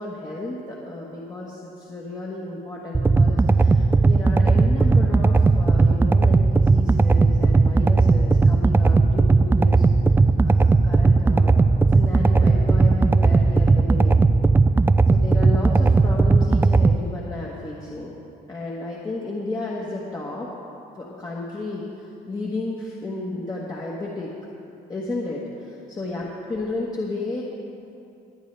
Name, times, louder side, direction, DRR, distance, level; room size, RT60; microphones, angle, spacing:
voice 1, 0.0-9.9 10.4-11.6 11.9-14.3 15.1-18.1 18.5-20.5 20.9-24.3 24.9-27.4, left 2 dB, 25° left, -4 dB, 1.5 m, -32 dB
sound 1, 2.9-17.0, right 3 dB, 15° right, 0.3 m, -17 dB
21.5 x 9.2 x 3.4 m, 2.7 s
cardioid pair, 110°, 17 cm